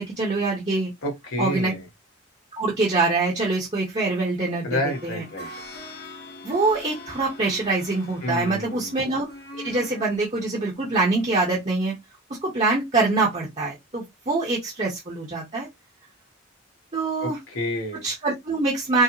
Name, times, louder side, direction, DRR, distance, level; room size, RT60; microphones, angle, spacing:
voice 1, 0.0-0.9 1.4-1.7 2.5-5.2 6.4-9.3 9.6-11.9 12.4-15.7 16.9-17.4 18.0-19.0, right 3 dB, 30° right, 0.8 m, -24 dB
voice 2, 1.0-1.8 4.6-5.5 8.2-8.9 17.2-18.0, left 1 dB, 85° left, 1.6 m, -29 dB
sound 1, 4.9-10.2 10.7-10.8, left 1 dB, 50° left, 1.0 m, -42 dB
4.6 x 2.0 x 3.1 m
head